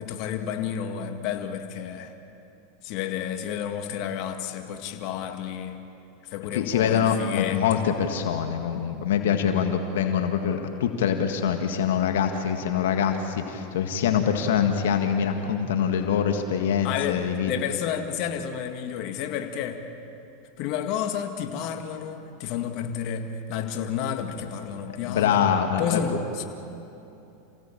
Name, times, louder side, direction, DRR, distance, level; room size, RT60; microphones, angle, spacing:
voice 1, 0.0-2.1 2.8-5.8 6.2-7.8 16.8-19.8 20.6-25.4 25.8-26.4, left 8 dB, 55° left, 5 dB, 2.0 m, -31 dB
voice 2, 6.5-17.5 25.1-26.0, left 8 dB, 80° left, 5 dB, 1.8 m, -24 dB
28.0 x 17.0 x 8.8 m, 2.9 s
hypercardioid pair, 110°, 0 cm